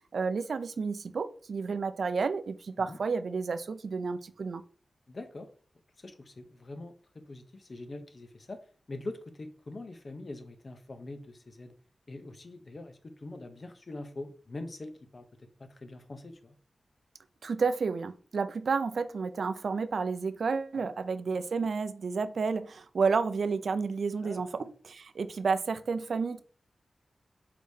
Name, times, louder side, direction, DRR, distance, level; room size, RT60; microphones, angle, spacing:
voice 1, 0.1-4.6 17.4-26.4, right 5 dB, 75° right, 0.4 m, -31 dB
voice 2, 5.1-5.5 6.0-8.6 8.9-11.7 12.1-16.6 20.7-20.9 24.2-24.7, left 2 dB, 50° left, 0.7 m, -44 dB
4.7 x 3.5 x 2.7 m
wide cardioid pair, 80°, 0 cm